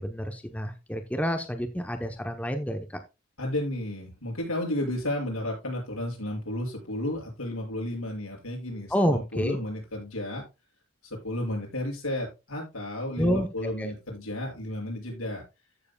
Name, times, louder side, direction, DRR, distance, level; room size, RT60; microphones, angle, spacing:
voice 1, 0.0-2.9 8.9-9.6 13.2-13.9, equal, 5° left, 5 dB, 0.9 m, -28 dB
voice 2, 3.4-10.4 11.0-15.4, left 1 dB, 85° left, -1 dB, 6.5 m, -32 dB
14.0 x 7.7 x 2.3 m, 0.27 s
head